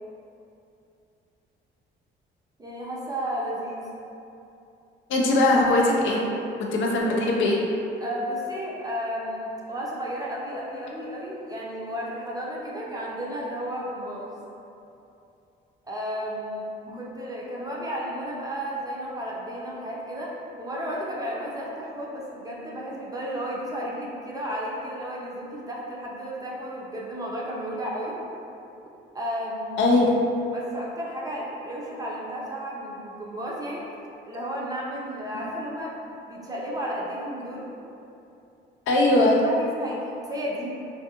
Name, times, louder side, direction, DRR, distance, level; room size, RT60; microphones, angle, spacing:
voice 1, 2.6-3.8 8.0-14.3 15.8-16.7 16.9-28.2 29.1-29.8 30.5-33.8 34.2-35.9 36.3-37.7 38.9-39.0 39.5-40.7, equal, 20° right, -5 dB, 0.5 m, -33 dB
voice 2, 5.1-6.2 6.7-7.6 16.9-17.0 29.8-30.1 38.9-39.4, left 2 dB, 75° left, -2 dB, 0.5 m, -20 dB
2.4 x 2.2 x 2.7 m, 2.7 s
cardioid pair, 90°, 20 cm